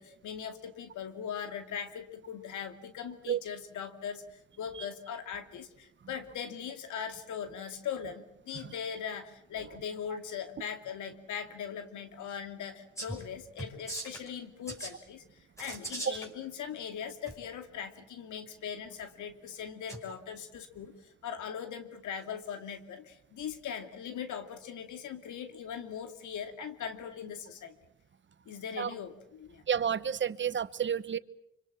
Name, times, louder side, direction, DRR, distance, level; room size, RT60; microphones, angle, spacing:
voice 1, 0.0-27.7 28.5-29.6, left 8 dB, 75° left, 8 dB, 2.6 m, -40 dB
sound 1, 13.0-13.3 13.6-14.3 14.7-14.9 15.6-16.3 17.3-17.4 19.9-20.0, right 1 dB, 10° left, 6.0 m, -39 dB
voice 2, 29.7-31.2, right 8 dB, 40° right, 15 dB, 1.1 m, -30 dB
25.5 x 25.0 x 7.5 m, 0.78 s
cardioid pair, 90°, 30 cm